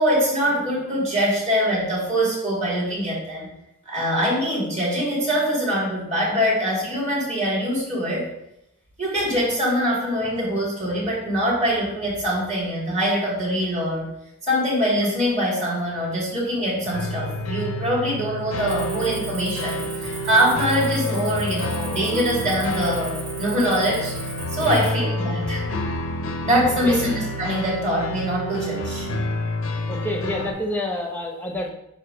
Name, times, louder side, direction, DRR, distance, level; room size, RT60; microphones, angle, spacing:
voice 1, 0.0-3.5 3.9-8.3 9.0-14.1 14.4-24.1 24.5-25.6 26.4-29.1, equal, 30° right, -5 dB, 2.6 m, -23 dB
sound 1, 16.8-30.5, left 1 dB, 65° left, 0.7 m, -29 dB
Cricket, 18.7-24.9, right 4 dB, 70° right, 1.5 m, -38 dB
voice 2, 26.6-27.0 29.9-31.7, left 1 dB, 10° left, 1 dB, 0.9 m, -28 dB
7.9 x 2.8 x 5.1 m, 0.83 s
head